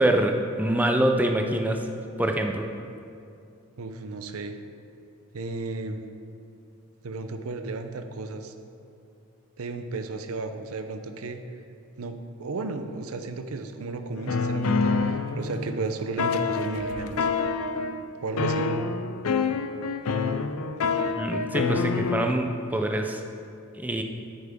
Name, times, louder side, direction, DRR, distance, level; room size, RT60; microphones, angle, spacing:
voice 1, 0.0-1.9 2.2-2.7 21.1-23.2 23.8-24.0, right 1 dB, 10° right, 4 dB, 0.4 m, -25 dB
voice 2, 3.8-4.6 5.3-6.0 7.0-8.5 9.6-11.4 12.0-17.3 18.2-18.7, right 3 dB, 85° right, 8 dB, 0.6 m, -34 dB
sound 1, 14.2-15.8 16.2-18.0 18.4-22.3, left 4 dB, 85° left, 0.5 m, -27 dB
9.4 x 9.3 x 3.6 m, 2.5 s
head